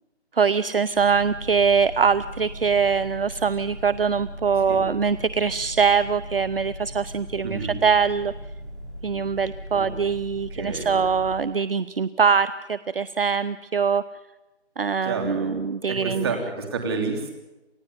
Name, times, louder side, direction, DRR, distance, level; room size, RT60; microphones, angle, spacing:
voice 1, 0.4-8.3 9.0-14.0 14.8-16.3, right 6 dB, 55° right, 16 dB, 0.8 m, -23 dB
sound 1, 0.9-11.4, equal, 10° left, 7.0 m, -38 dB
voice 2, 7.4-7.8 9.7-9.9 10.5-10.9 15.0-15.6 15.9-17.3, right 4 dB, 20° right, 4 dB, 3.2 m, -29 dB
28.5 x 15.5 x 9.5 m, 1.0 s
figure-of-eight pair, 165°, 34 cm